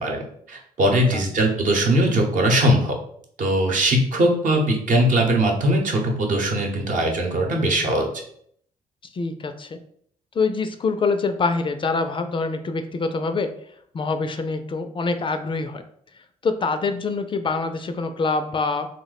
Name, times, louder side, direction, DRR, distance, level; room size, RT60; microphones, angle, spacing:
voice 1, 0.0-2.9 3.4-8.1, right 1 dB, 60° right, 1 dB, 0.9 m, -20 dB
voice 2, 9.1-9.8 10.4-13.5 13.9-15.8 16.4-18.9, left 4 dB, 35° left, 8 dB, 0.3 m, -25 dB
3.0 x 2.1 x 4.0 m, 0.65 s
cardioid pair, 75°, 15 cm